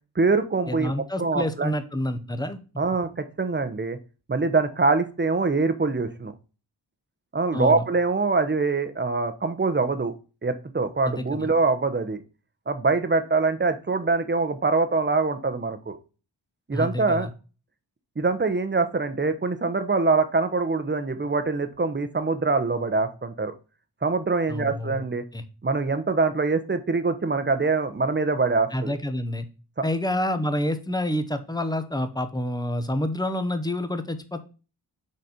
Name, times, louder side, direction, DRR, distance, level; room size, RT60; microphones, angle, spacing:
voice 1, 0.2-1.7 2.8-4.0 4.3-6.3 7.3-10.2 10.4-12.2 12.7-16.0 16.7-17.3 18.2-23.5 24.0-25.2 25.6-29.0, right 3 dB, 25° right, 10 dB, 0.9 m, -24 dB
voice 2, 0.7-2.6 7.5-7.8 11.0-11.5 16.7-17.3 24.5-25.1 25.3-25.4 28.7-29.5 29.8-34.4, left 1 dB, 10° left, 9 dB, 0.8 m, -28 dB
6.6 x 4.1 x 4.3 m, 0.34 s
wide cardioid pair, 85°, 42 cm